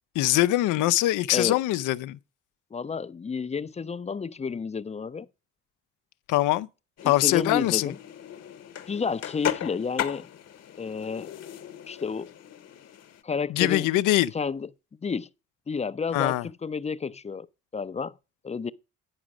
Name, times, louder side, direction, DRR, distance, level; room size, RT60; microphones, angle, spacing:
voice 1, 0.1-2.2 6.3-6.7 7.0-7.9 13.5-14.3 16.1-16.5, left 16 dB, 90° left, 0.6 m, -23 dB
voice 2, 2.7-5.3 7.0-8.0 8.9-10.3 10.8-11.3 11.9-12.3 13.2-13.9 14.3-14.7 15.0-15.3 15.7-17.5 17.7-18.1 18.4-18.7, left 5 dB, 20° left, 0.5 m, -31 dB
sound 1, 7.0-13.2, left 10 dB, 55° left, 1.1 m, -36 dB
9.8 x 5.1 x 6.0 m
cardioid pair, 90°, 30 cm